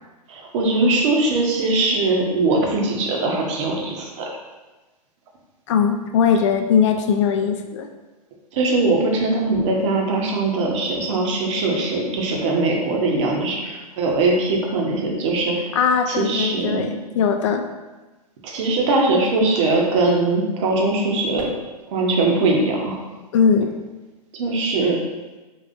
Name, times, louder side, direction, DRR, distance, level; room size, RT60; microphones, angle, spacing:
voice 1, 0.3-4.3 8.5-15.7 16.1-16.9 18.4-21.5 21.9-23.0 24.3-25.0, right 2 dB, 50° right, -1 dB, 1.1 m, -21 dB
voice 2, 5.7-7.9 15.7-17.7 23.3-23.7, left 6 dB, 50° left, 6 dB, 0.5 m, -19 dB
5.4 x 3.2 x 2.6 m, 1.2 s
figure-of-eight pair, 110°, 20 cm